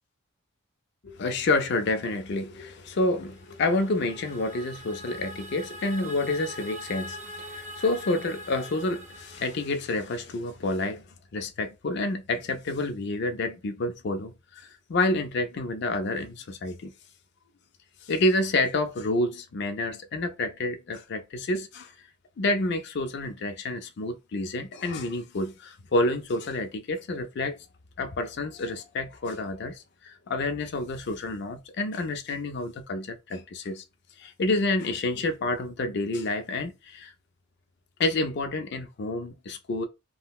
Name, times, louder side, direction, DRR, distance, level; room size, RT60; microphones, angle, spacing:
voice 1, 1.0-11.0 11.3-16.9 18.0-21.9 22.4-27.6 28.0-33.8 34.2-37.1 38.0-39.9, left 2 dB, 55° left, 0.4 m, -29 dB
sound 1, 3.3-10.4, equal, 35° right, 0.5 m, -43 dB
3.7 x 2.1 x 2.3 m
head